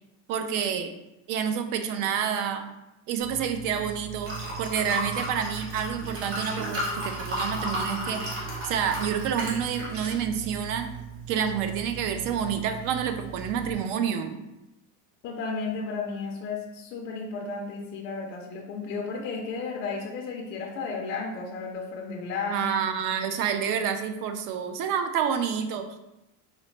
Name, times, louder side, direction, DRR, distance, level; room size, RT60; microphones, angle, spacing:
voice 1, 0.3-0.9 1.3-2.7 3.1-8.2 8.6-10.9 11.3-14.4 22.5-26.0, right 7 dB, 60° right, 7 dB, 0.5 m, -28 dB
Liquid, 3.2-13.7, right 2 dB, 30° right, 1.2 m, -35 dB
voice 2, 15.2-22.7, left 4 dB, 30° left, 0 dB, 0.4 m, -33 dB
3.9 x 2.0 x 3.1 m, 0.93 s
cardioid pair, 140°, 38 cm